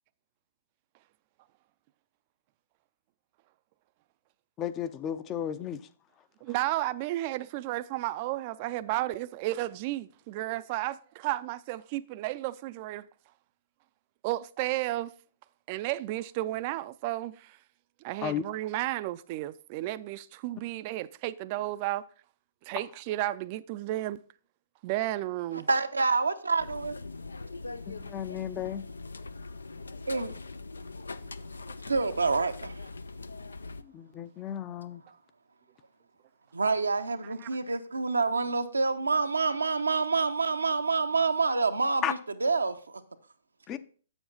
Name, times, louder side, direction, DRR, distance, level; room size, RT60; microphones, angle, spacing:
voice 1, 4.6-5.8 18.2-18.4 27.9-28.8 33.8-35.0 42.0-42.1 43.7-43.8, left 9 dB, 25° left, 0.5 m, -34 dB
voice 2, 6.4-13.1 14.2-15.1 15.7-17.6 18.0-22.0 22.6-24.2 24.8-25.7 37.4-37.5, right 16 dB, 40° right, 0.4 m, -33 dB
voice 3, 25.5-26.9 30.1-30.3 31.8-32.9 36.5-43.0, right 4 dB, 90° right, 0.7 m, -27 dB
sound 1, 26.6-33.8, left 3 dB, 85° left, 0.5 m, -42 dB
7.6 x 7.1 x 3.9 m
hypercardioid pair, 125°, 0 cm